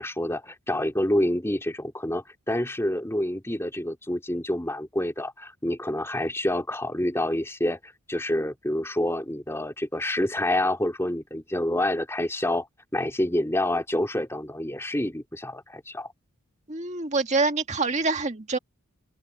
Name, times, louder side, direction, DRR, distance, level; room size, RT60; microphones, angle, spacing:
voice 1, 0.0-12.7 12.9-16.1, left 1 dB, 10° left, 3.1 m, -27 dB
voice 2, 16.7-18.6, right 3 dB, 35° right, 1.7 m, -26 dB
open air
head